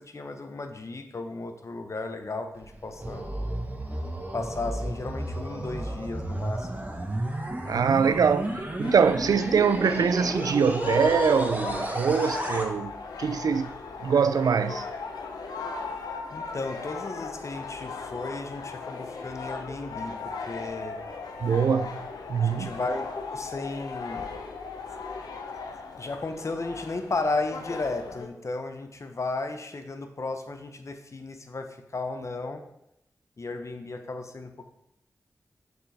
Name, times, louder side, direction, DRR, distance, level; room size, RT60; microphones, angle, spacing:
voice 1, 0.0-3.2 4.3-6.8 16.3-21.0 22.4-24.3 26.0-31.7 31.9-32.6 33.4-34.7, left 3 dB, 50° left, 0.8 m, -34 dB
sound 1, 2.5-12.7, right 1 dB, 25° right, 1.1 m, -32 dB
voice 2, 7.7-8.5 8.8-13.7 14.0-14.9 21.4-22.8, right 6 dB, 75° right, 0.3 m, -23 dB
sound 2, 8.8-28.3, left 4 dB, 85° left, 0.6 m, -37 dB
6.4 x 4.7 x 3.4 m
cardioid pair, 40°, 6 cm